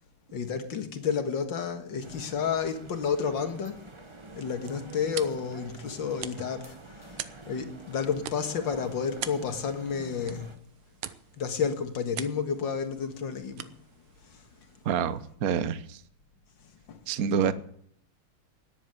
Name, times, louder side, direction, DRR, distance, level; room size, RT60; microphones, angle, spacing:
voice 1, 0.3-3.8 4.3-10.5 11.4-13.8 14.3-14.4 16.9-17.0, left 6 dB, 65° left, 2.3 m, -31 dB
sound 1, 2.0-10.6, right 2 dB, 20° right, 0.9 m, -47 dB
sound 2, 4.1-15.3, right 11 dB, 85° right, 1.7 m, -45 dB
voice 2, 14.8-16.0 17.1-17.5, right 7 dB, 55° right, 1.1 m, -27 dB
14.5 x 10.5 x 7.7 m
omnidirectional pair, 2.3 m